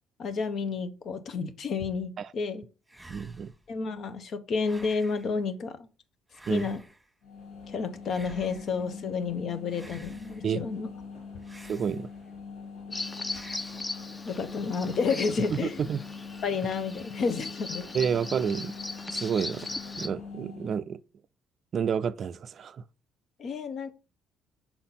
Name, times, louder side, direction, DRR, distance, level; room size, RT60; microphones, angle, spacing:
voice 1, 0.2-2.6 3.7-5.9 6.5-6.8 7.7-10.9 14.2-15.8 16.4-18.0 23.4-23.9, left 5 dB, 60° left, 0.9 m, -31 dB
sound 1, 2.9-3.7 4.6-5.3 6.3-7.1 8.0-8.8 9.7-10.5 11.4-12.3 13.2-13.9 15.0-15.7, right 1 dB, 5° right, 1.3 m, -51 dB
voice 2, 3.1-3.5 6.5-6.7 10.4-10.6 11.7-12.1 15.5-15.6 15.9-16.0 17.9-18.7 19.1-19.7 20.0-21.0 21.7-22.8, right 7 dB, 55° right, 0.3 m, -29 dB
sound 2, 7.2-20.8, left 5 dB, 80° left, 2.0 m, -43 dB
Bird vocalization bird call bird song, 12.9-20.1, left 2 dB, 25° left, 0.7 m, -39 dB
5.9 x 4.1 x 3.9 m
supercardioid pair, 70°, 0 cm